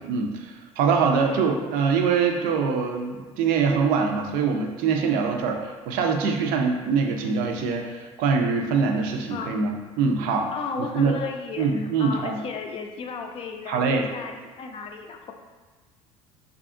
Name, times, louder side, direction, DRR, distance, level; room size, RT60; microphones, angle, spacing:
voice 1, 0.0-10.5 10.8-11.2 11.6-12.4 13.7-14.1, right 5 dB, 65° right, 3 dB, 0.4 m, -24 dB
voice 2, 9.3-9.6 10.5-15.3, left 5 dB, 40° left, 4 dB, 0.4 m, -35 dB
2.6 x 2.5 x 2.4 m, 1.4 s
hypercardioid pair, 75°, 16 cm